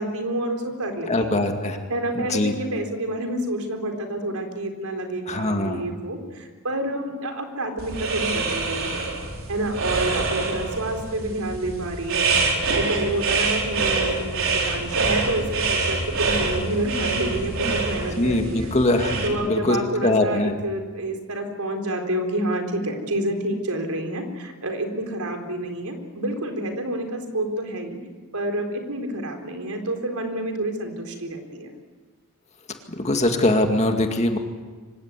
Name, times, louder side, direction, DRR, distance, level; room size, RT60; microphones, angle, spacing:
voice 1, 0.0-1.4 1.9-9.1 9.5-18.7 19.2-28.0 28.3-31.7, right 1 dB, 85° right, 4 dB, 4.3 m, -28 dB
voice 2, 1.1-1.8 2.2-2.5 5.3-5.8 17.6-17.7 18.1-19.8 20.0-20.5 32.9-34.4, left 1 dB, 30° left, 4 dB, 2.2 m, -22 dB
sound 1, 7.8-19.3, right 3 dB, 65° right, 4.6 m, -25 dB
25.0 x 17.5 x 9.8 m, 1.4 s
head